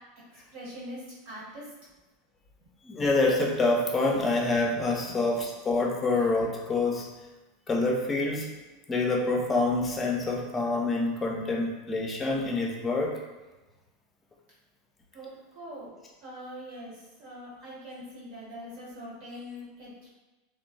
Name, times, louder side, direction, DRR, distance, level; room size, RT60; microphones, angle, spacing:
voice 1, 0.5-1.0 1.2-1.6 5.1-5.2 15.1-15.3 15.5-15.9 16.2-16.9 17.2-20.1, equal, 55° right, -6 dB, 1.3 m, -42 dB
voice 2, 2.8-7.0 7.7-8.5 8.9-13.2, left 2 dB, 20° left, 0 dB, 0.5 m, -26 dB
2.9 x 2.0 x 2.5 m, 1.1 s
hypercardioid pair, 90°, 0 cm